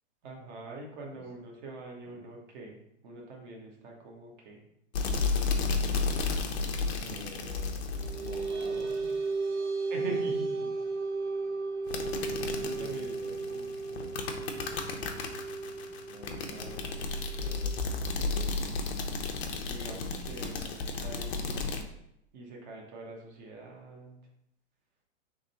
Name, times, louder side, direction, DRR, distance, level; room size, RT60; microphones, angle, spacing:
voice 1, 0.2-4.6 9.9-10.7 12.6-14.0 19.7-21.8 22.3-24.2, right 2 dB, 35° right, 0 dB, 1.1 m, -44 dB
sound 1, 4.9-9.1 11.9-21.8, left 4 dB, 55° left, 0.8 m, -33 dB
voice 2, 7.0-7.8 8.2-9.2 12.7-13.4 13.9-14.1 16.1-17.0 17.3-17.8 18.1-18.5 19.7-20.4, right 1 dB, 85° right, -1 dB, 1.3 m, -48 dB
sound 2, 7.7-18.7, right 3 dB, 65° right, 0.9 m, -35 dB
3.7 x 3.2 x 4.2 m, 0.77 s
hypercardioid pair, 145°, 37 cm